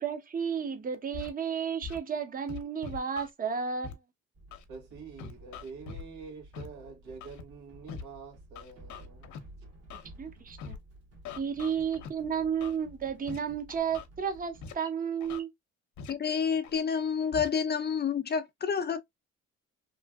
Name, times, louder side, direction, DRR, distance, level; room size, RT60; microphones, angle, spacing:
voice 1, 0.0-4.0 10.2-10.8 11.4-15.5, right 7 dB, 30° right, 0.7 m, -32 dB
Scratching (performance technique), 1.1-1.3 1.8-2.0 2.5-3.3 3.8-3.9 4.5-4.6 5.2-6.0 6.5-6.7 7.2-7.4 7.9-8.0 8.6-9.4 9.9-10.1 10.6-10.8 11.3-12.1 12.6-12.8 13.3-13.4 13.7-14.1 14.6-14.7 15.2-15.4 16.0-16.1 16.6-16.8 17.3-17.5, left 5 dB, 70° left, 0.7 m, -42 dB
sound 1, 4.3-14.7, right 1 dB, 55° right, 1.3 m, -53 dB
voice 2, 4.7-9.3, right 4 dB, 85° right, 1.4 m, -46 dB
voice 3, 16.1-19.0, left 6 dB, 35° left, 0.5 m, -29 dB
3.1 x 2.5 x 2.3 m
cardioid pair, 90°, 30 cm